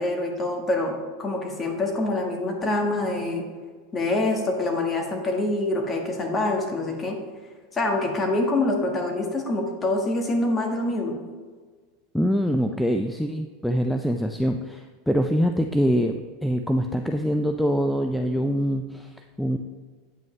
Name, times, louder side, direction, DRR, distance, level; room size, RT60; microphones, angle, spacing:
voice 1, 0.0-3.4 3.9-7.2 7.7-11.1, left 2 dB, 25° left, 2 dB, 1.5 m, -25 dB
voice 2, 12.1-19.6, equal, ahead, 4 dB, 0.4 m, -24 dB
9.0 x 5.3 x 3.2 m, 1.5 s
hypercardioid pair, 100°, 0 cm